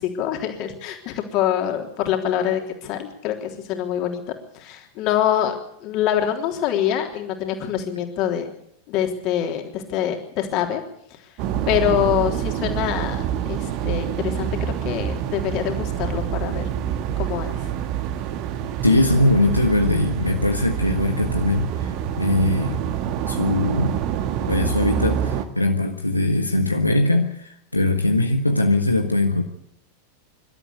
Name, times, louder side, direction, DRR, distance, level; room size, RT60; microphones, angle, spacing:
voice 1, 0.0-4.2 4.5-5.5 5.8-8.5 8.9-10.8 11.7-13.2 13.5-16.6 17.2-17.7, left 10 dB, 40° left, 4 dB, 3.4 m, -25 dB
sound 1, 11.4-25.5, right 9 dB, 45° right, 1.7 m, -26 dB
voice 2, 18.8-22.8 23.3-23.9 24.5-29.4, left 2 dB, 85° left, 4 dB, 1.5 m, -21 dB
25.5 x 12.5 x 8.4 m, 0.73 s
figure-of-eight pair, 90°, 0 cm